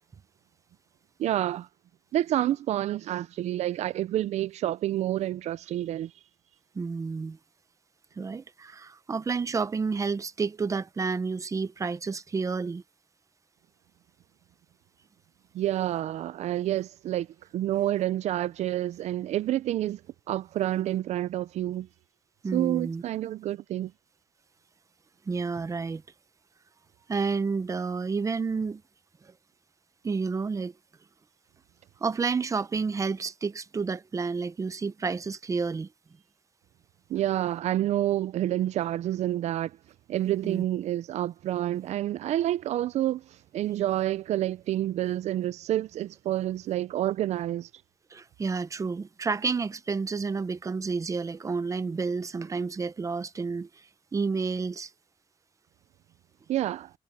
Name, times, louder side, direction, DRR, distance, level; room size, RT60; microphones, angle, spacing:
voice 1, 1.2-1.7 2.1-6.1 15.5-17.3 17.5-20.0 20.3-21.9 22.5-23.9 37.1-39.8 40.1-47.7 56.5-56.9, right 13 dB, 85° right, 0.4 m, -28 dB
voice 2, 6.7-7.4 8.2-12.8 22.4-23.0 25.3-26.0 27.1-28.8 30.0-30.7 32.0-35.9 40.4-40.6 48.1-53.7 54.1-54.9, right 4 dB, 30° right, 0.8 m, -30 dB
cardioid pair, 125°, 11 cm